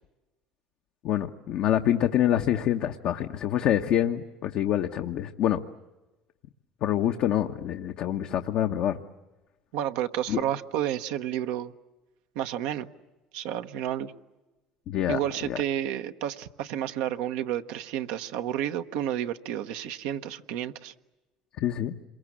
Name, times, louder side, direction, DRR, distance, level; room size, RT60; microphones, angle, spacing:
voice 1, 1.0-5.6 6.8-9.0 10.3-10.4 14.9-15.2 15.5-15.6 21.6-21.9, left 11 dB, 65° left, 1.0 m, -26 dB
voice 2, 9.7-11.7 12.3-12.9 13.3-14.1 15.1-20.9, right 11 dB, 75° right, 0.9 m, -31 dB
27.5 x 22.5 x 8.6 m
hypercardioid pair, 75°, 3 cm